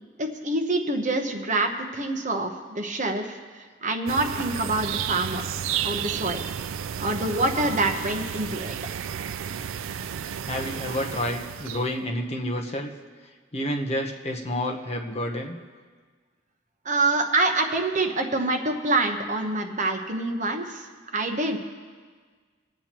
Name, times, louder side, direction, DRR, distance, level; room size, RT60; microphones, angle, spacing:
voice 1, 0.2-5.4 5.8-6.4 7.0-8.7 16.8-20.9 21.1-21.6, right 2 dB, 40° right, 4 dB, 1.0 m, -26 dB
sound 1, 4.1-11.9, right 8 dB, 85° right, 0.4 m, -32 dB
voice 2, 10.5-12.9 13.5-15.6, left 1 dB, 35° left, 2 dB, 0.9 m, -29 dB
25.0 x 8.6 x 3.0 m, 1.5 s
head